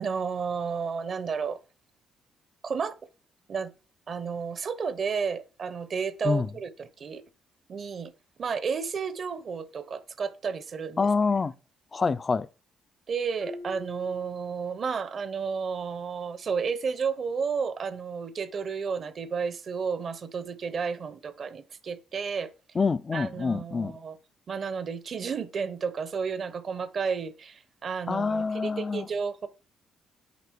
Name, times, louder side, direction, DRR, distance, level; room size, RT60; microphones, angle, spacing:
voice 1, 0.0-1.6 2.6-2.9 3.5-3.7 4.1-7.2 7.7-8.1 8.4-11.1 13.1-22.5 23.1-24.2 24.5-29.5, right 5 dB, 50° right, 0.9 m, -32 dB
voice 2, 11.0-11.5 11.9-12.5 22.7-23.9 28.1-29.1, left 4 dB, 35° left, 0.4 m, -26 dB
Marimba xylophone, 13.4-15.2, left 3 dB, 85° left, 1.6 m, -44 dB
8.3 x 5.0 x 4.6 m
cardioid pair, 90°, 0 cm